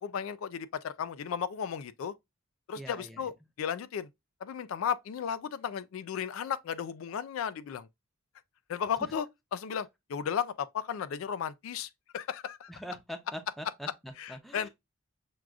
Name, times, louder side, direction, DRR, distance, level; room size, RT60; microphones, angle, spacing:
voice 1, 0.0-2.1 2.7-3.3 3.6-4.1 4.4-7.9 8.7-9.3 9.5-12.7 14.2-14.7, left 8 dB, 70° left, 0.3 m, -34 dB
voice 2, 2.8-3.3 12.7-14.7, equal, ahead, 0.6 m, -43 dB
6.2 x 2.4 x 2.3 m
head